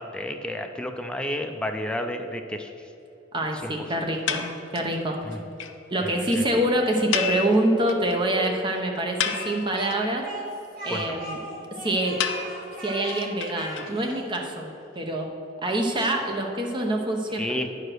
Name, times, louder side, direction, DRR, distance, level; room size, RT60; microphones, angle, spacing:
voice 1, 0.0-2.9 3.6-3.9 5.2-5.4 6.0-6.5 10.9-11.2 17.4-17.7, left 1 dB, 5° left, 5 dB, 0.4 m, -32 dB
voice 2, 3.3-4.5 4.7-5.2 5.9-10.3 10.8-11.4 11.8-12.2 12.8-15.3 15.6-17.7, right 1 dB, 25° right, 2 dB, 0.9 m, -25 dB
sound 1, 4.3-5.0 5.3-5.4 5.6-5.7 6.0-6.1 6.3-6.4 7.1-8.1 8.4-8.5 8.9-9.9 12.2-14.2, left 8 dB, 70° left, 0.5 m, -30 dB
Speech, 9.2-14.3, right 1 dB, 50° right, 1.9 m, -38 dB
9.3 x 4.9 x 6.2 m, 2.7 s
head